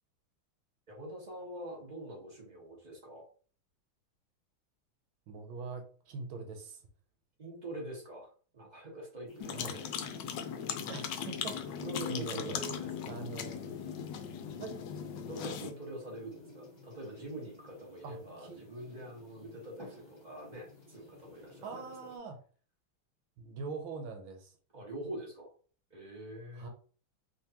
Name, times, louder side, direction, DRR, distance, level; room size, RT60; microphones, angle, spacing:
voice 1, 0.9-3.3 7.4-10.0 11.8-13.1 15.2-21.9 24.7-25.5 25.9-26.7, right 1 dB, 25° right, -2 dB, 1.2 m, -45 dB
voice 2, 5.3-6.8 9.5-9.8 10.8-12.6 13.1-13.6 14.6-14.8 18.0-18.6 21.6-22.4 23.4-24.6 26.5-26.7, right 4 dB, 80° right, 4 dB, 1.5 m, -43 dB
sound 1, 9.3-22.2, left 2 dB, 20° left, 0.9 m, -55 dB
sound 2, 9.4-15.7, left 8 dB, 70° left, 1.1 m, -38 dB
3.7 x 3.3 x 2.8 m, 0.42 s
omnidirectional pair, 2.2 m